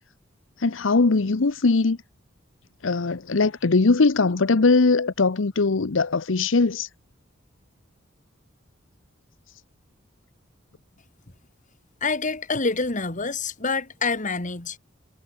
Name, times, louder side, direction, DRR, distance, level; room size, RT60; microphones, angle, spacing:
voice 1, 0.6-2.0 2.8-6.9, left 3 dB, 85° left, 0.8 m, -20 dB
voice 2, 12.0-14.8, left 4 dB, 40° left, 2.1 m, -26 dB
head